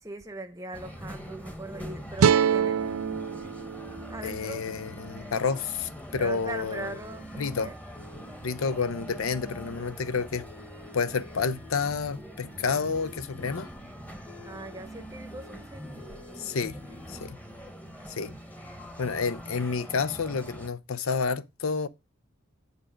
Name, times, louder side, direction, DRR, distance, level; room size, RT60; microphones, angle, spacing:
voice 1, 0.0-2.8 4.1-4.6 6.2-7.8 14.4-16.5 16.8-17.3, right 2 dB, 15° right, 0.8 m, -41 dB
sound 1, 0.7-20.7, equal, 5° left, 1.0 m, -43 dB
sound 2, 2.2-5.4, right 7 dB, 85° right, 0.4 m, -26 dB
voice 2, 4.2-6.9 7.4-7.7 8.4-10.5 10.9-13.7 16.4-16.8 17.1-17.4 18.1-18.3 19.0-21.9, left 5 dB, 85° left, 0.6 m, -30 dB
8.2 x 4.9 x 5.1 m
head